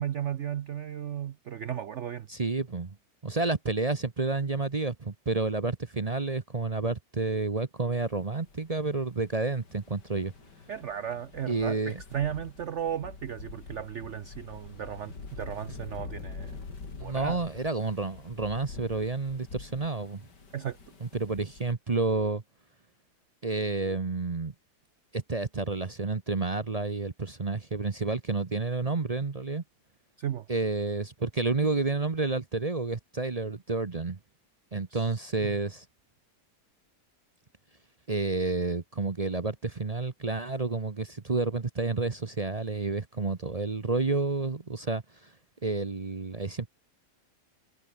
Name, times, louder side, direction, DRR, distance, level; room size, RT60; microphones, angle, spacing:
voice 1, 0.0-2.3 10.7-16.6 17.0-17.4 20.5-20.8 30.2-30.5 34.9-35.1 35.4-35.6, right 9 dB, 60° right, 0.8 m, -35 dB
voice 2, 2.3-3.0 3.2-10.3 11.5-12.0 17.0-20.2 21.0-22.4 23.4-24.5 25.1-29.6 30.5-34.2 34.7-35.8 38.1-45.3 45.6-46.7, right 3 dB, 30° right, 0.8 m, -30 dB
sound 1, 8.0-21.7, left 4 dB, 85° left, 3.9 m, -46 dB
omnidirectional pair, 1.8 m